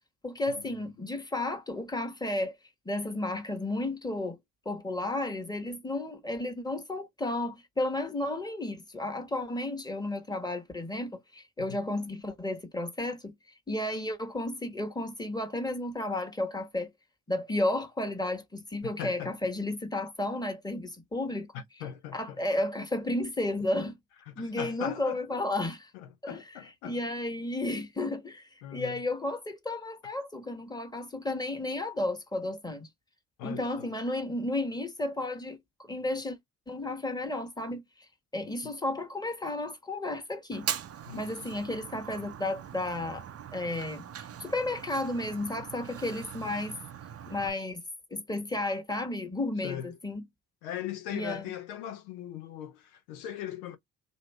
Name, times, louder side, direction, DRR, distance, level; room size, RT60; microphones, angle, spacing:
voice 1, 0.2-2.6 2.8-4.4 4.6-13.3 13.7-16.9 17.3-21.5 22.1-24.0 24.4-25.9 26.2-26.4 26.8-32.9 33.4-36.4 36.7-37.8 38.3-40.7 41.1-43.2 43.5-44.0 44.4-46.7 47.3-47.8 48.1-50.2 51.1-51.5, left 2 dB, 10° left, 1.3 m, -33 dB
voice 2, 19.0-19.3 21.5-22.4 24.3-25.4 25.9-27.0 28.6-29.0 33.4-33.9 41.1-41.5 49.6-49.9 50.6-53.8, left 10 dB, 75° left, 0.7 m, -40 dB
Fire, 40.5-47.5, right 9 dB, 35° right, 0.6 m, -41 dB
3.0 x 2.7 x 3.2 m
hypercardioid pair, 50°, 44 cm